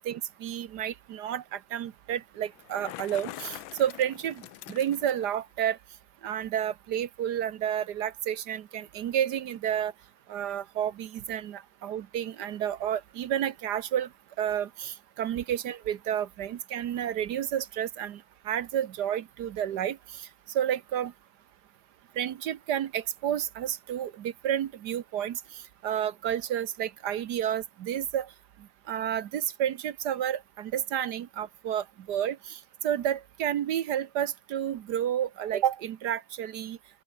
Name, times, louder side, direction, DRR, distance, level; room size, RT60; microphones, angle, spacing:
voice 1, 0.0-4.4 4.7-5.8 6.2-9.9 10.3-14.1 14.4-20.3 20.5-21.1 22.2-28.3 28.9-36.8, right 10 dB, 65° right, 1.3 m, -31 dB
Bicycle, 2.5-5.4, left 16 dB, 85° left, 1.4 m, -44 dB
open air
omnidirectional pair, 2.1 m